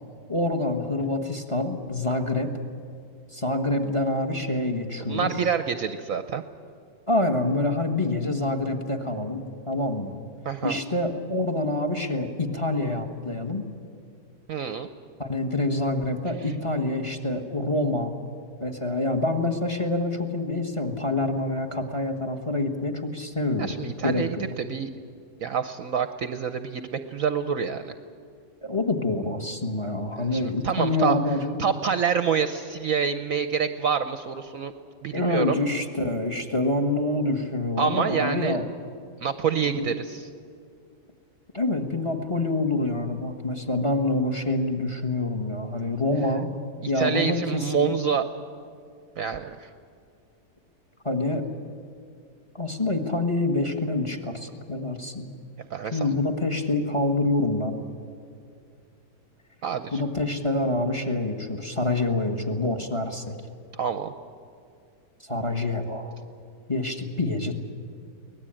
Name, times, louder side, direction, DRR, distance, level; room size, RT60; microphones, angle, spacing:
voice 1, 0.3-2.5 3.3-5.3 7.1-10.2 10.6-13.7 15.2-18.1 18.6-23.8 24.0-24.5 28.6-31.6 35.1-38.6 39.8-39.9 41.5-46.5 46.8-47.9 51.0-51.5 52.5-55.3 55.8-57.8 59.9-63.3 65.3-66.1 66.7-67.5, left 2 dB, 20° left, 6 dB, 1.3 m, -26 dB
voice 2, 5.1-6.4 10.4-10.8 14.5-14.9 23.6-24.9 25.4-27.9 30.2-31.2 31.6-34.7 35.0-35.6 37.8-38.6 39.2-40.3 46.8-48.2 49.2-49.7 55.7-56.2 59.6-60.0 63.7-64.1, right 7 dB, 60° right, 10 dB, 1.0 m, -27 dB
23.5 x 18.0 x 8.9 m, 2.4 s
omnidirectional pair, 1.9 m